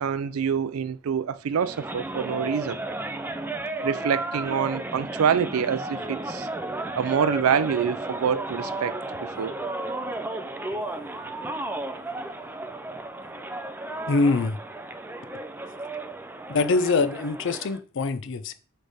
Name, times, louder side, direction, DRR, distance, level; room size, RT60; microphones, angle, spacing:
voice 1, 0.0-2.8 3.8-6.5 7.0-8.9 9.2-9.5, right 7 dB, 90° right, 0.4 m, -26 dB
sound 1, 1.6-17.8, right 2 dB, 10° right, 0.4 m, -34 dB
voice 2, 14.1-14.6 16.5-18.5, left 3 dB, 60° left, 0.5 m, -24 dB
6.3 x 3.3 x 4.9 m
head